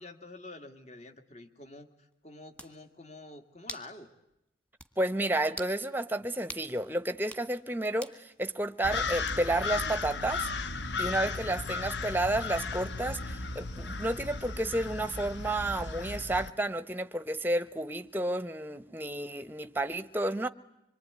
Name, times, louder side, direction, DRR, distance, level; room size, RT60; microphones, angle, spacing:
voice 1, 0.0-4.1, left 2 dB, 35° left, 2.2 m, -48 dB
sound 1, 2.1-2.2 2.6-2.8 3.7-3.9 4.3-4.4 4.8-4.9 5.5-5.8 6.5-6.7 7.2-7.5 8.0-8.2 9.3-9.6, equal, 5° left, 1.8 m, -43 dB
voice 2, 5.0-10.5 11.0-20.5, right 1 dB, 10° right, 0.9 m, -31 dB
sound 2, 8.8-16.5, left 3 dB, 70° left, 1.2 m, -35 dB
26.0 x 23.5 x 9.6 m
head